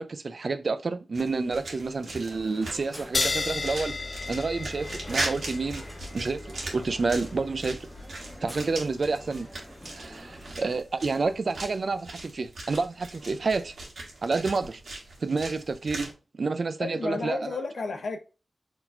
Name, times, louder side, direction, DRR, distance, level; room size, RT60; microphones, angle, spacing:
voice 1, 0.0-3.9 4.3-5.8 6.1-7.9 8.4-9.5 9.9-13.7 14.2-14.8 15.2-16.1 16.4-17.4, right 4 dB, 55° right, 0.5 m, -29 dB
sound 1, 1.1-16.1, right 2 dB, 80° right, 1.8 m, -39 dB
Crowd, 2.0-10.8, equal, 5° left, 1.6 m, -47 dB
sound 2, 3.1-10.1, left 3 dB, 50° left, 0.4 m, -35 dB
voice 2, 10.0-10.4 16.8-18.2, left 3 dB, 80° left, 0.9 m, -33 dB
4.6 x 3.8 x 2.5 m
wide cardioid pair, 115°, 0 cm